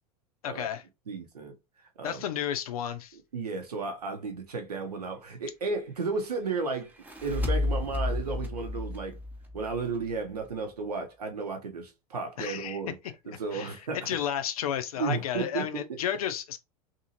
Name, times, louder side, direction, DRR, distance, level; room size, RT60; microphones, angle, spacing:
voice 1, 0.4-0.8 2.0-3.2 12.4-12.8 13.5-16.6, left 10 dB, 70° left, 0.5 m, -32 dB
voice 2, 1.1-1.5 2.0-2.3 3.3-6.9 7.2-9.2 9.5-13.0 13.3-14.3 15.0-16.0, right 4 dB, 80° right, 0.9 m, -33 dB
sound 1, 6.8-10.2, left 2 dB, 10° right, 0.7 m, -32 dB
2.7 x 2.7 x 2.8 m
figure-of-eight pair, 85°, 20 cm